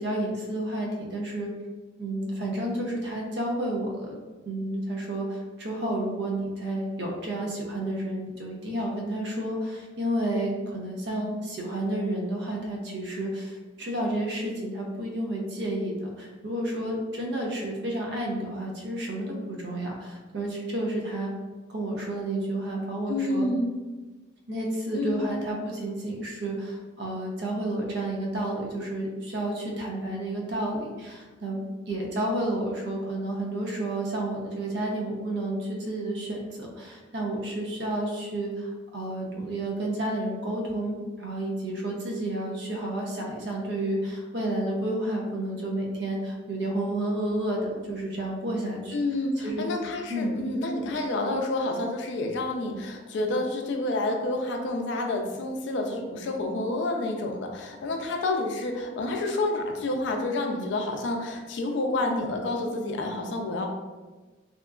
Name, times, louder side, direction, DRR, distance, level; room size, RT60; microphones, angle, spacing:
voice 1, 0.0-1.5 2.0-4.2 4.4-21.3 21.7-23.5 24.5-49.0 49.4-49.6 50.1-50.4, right 1 dB, 60° right, -1 dB, 0.5 m, -31 dB
voice 2, 23.1-23.7 24.9-25.2 48.9-63.7, left 2 dB, 65° left, 3 dB, 0.3 m, -29 dB
2.7 x 2.3 x 2.2 m, 1.3 s
head